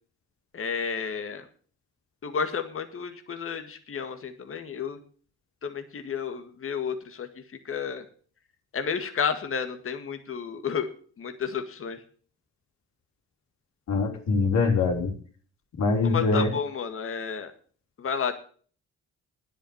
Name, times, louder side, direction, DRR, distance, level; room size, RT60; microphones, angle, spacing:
voice 1, 0.5-1.5 2.2-5.0 5.6-8.1 8.7-10.9 11.2-12.0 16.0-17.5 18.0-18.3, left 6 dB, 45° left, 8 dB, 1.8 m, -31 dB
voice 2, 13.9-15.1 15.8-16.5, left 3 dB, 65° left, 2 dB, 3.5 m, -23 dB
10.0 x 8.7 x 7.9 m, 0.44 s
cardioid pair, 90°, 30 cm